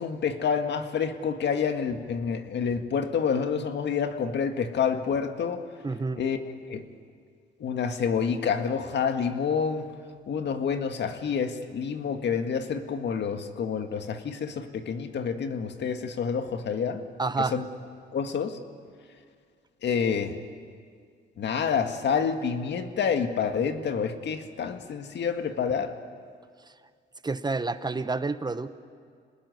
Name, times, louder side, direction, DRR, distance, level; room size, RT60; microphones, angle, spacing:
voice 1, 0.0-5.6 6.2-6.4 6.7-6.8 7.6-9.9 10.3-17.0 17.5-17.6 18.1-18.6 19.8-20.4 21.4-25.9, left 6 dB, 60° left, 7 dB, 1.9 m, -28 dB
voice 2, 5.8-6.2 17.2-17.6 27.2-28.7, right 3 dB, 20° right, 12 dB, 1.1 m, -29 dB
27.0 x 20.0 x 9.5 m, 2.1 s
cardioid pair, 90°, 20 cm